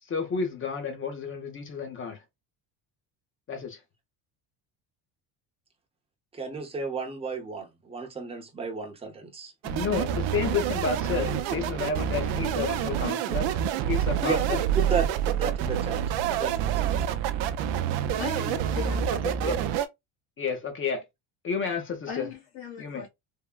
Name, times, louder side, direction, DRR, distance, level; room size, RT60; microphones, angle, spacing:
voice 1, 0.0-2.2 3.5-3.8 9.6-13.5 13.9-14.6 19.1-19.6 20.4-21.0 21.4-22.3 22.8-23.1, left 5 dB, 25° left, 0.6 m, -31 dB
voice 2, 6.3-9.5 14.2-14.4 14.8-16.0 16.3-16.7, right 5 dB, 15° right, 0.6 m, -32 dB
sound 1, 9.6-19.9, right 9 dB, 65° right, 0.5 m, -27 dB
voice 3, 17.5-19.1 22.1-23.1, left 6 dB, 60° left, 1.3 m, -38 dB
3.6 x 2.1 x 2.2 m
cardioid pair, 150°, 47 cm